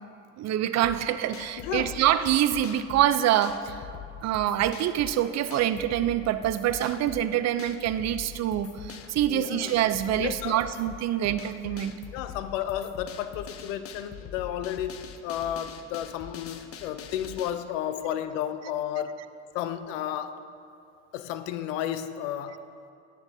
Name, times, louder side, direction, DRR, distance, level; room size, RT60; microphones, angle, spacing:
voice 1, 0.4-3.8 4.2-11.9, right 11 dB, 45° right, 12 dB, 0.5 m, -25 dB
sound 1, 0.8-17.5, left 8 dB, 40° left, 0.7 m, -43 dB
voice 2, 1.6-2.0 9.3-9.7 10.2-10.7 12.1-19.3 19.5-20.4 21.1-22.6, left 10 dB, 80° left, 11 dB, 0.6 m, -32 dB
12.0 x 9.6 x 2.7 m, 2.6 s
hypercardioid pair, 75°, 37 cm